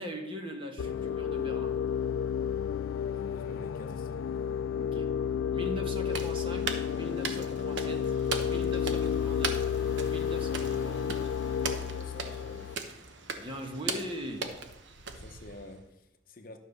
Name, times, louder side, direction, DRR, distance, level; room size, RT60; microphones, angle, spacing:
voice 1, 0.0-1.7 4.7-5.1 5.5-8.1 8.4-9.6 10.1-11.2 13.4-14.5, equal, 25° right, 1.2 m, -40 dB
sound 1, 0.8-12.8, left 8 dB, 75° left, 0.4 m, -31 dB
voice 2, 3.1-4.4 11.8-12.8 15.1-16.6, left 2 dB, 45° left, 0.9 m, -49 dB
sound 2, 6.1-15.8, right 4 dB, 65° right, 1.0 m, -39 dB
sound 3, 7.5-14.4, right 1 dB, 80° right, 1.6 m, -56 dB
12.0 x 5.5 x 6.6 m
head